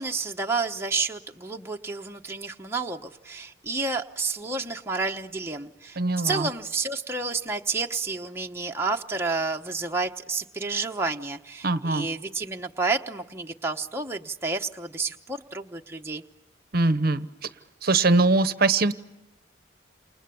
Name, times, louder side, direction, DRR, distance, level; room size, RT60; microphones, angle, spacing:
voice 1, 0.0-16.2, right 3 dB, 10° right, 2 dB, 1.0 m, -30 dB
voice 2, 6.0-6.5 11.6-12.1 16.7-17.3 17.8-19.0, right 3 dB, 50° right, 13 dB, 1.0 m, -22 dB
29.5 x 28.5 x 7.0 m, 0.92 s
head